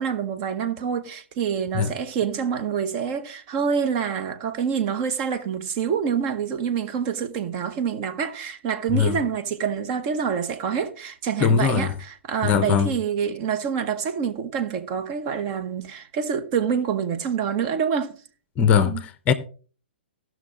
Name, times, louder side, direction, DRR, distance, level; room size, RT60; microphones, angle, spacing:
voice 1, 0.0-18.2 18.8-19.0, right 7 dB, 35° right, 1.0 m, -26 dB
voice 2, 11.4-11.9 12.4-12.9 18.6-19.3, left 7 dB, 25° left, 0.7 m, -20 dB
16.0 x 6.1 x 3.7 m
figure-of-eight pair, 120°, 6 cm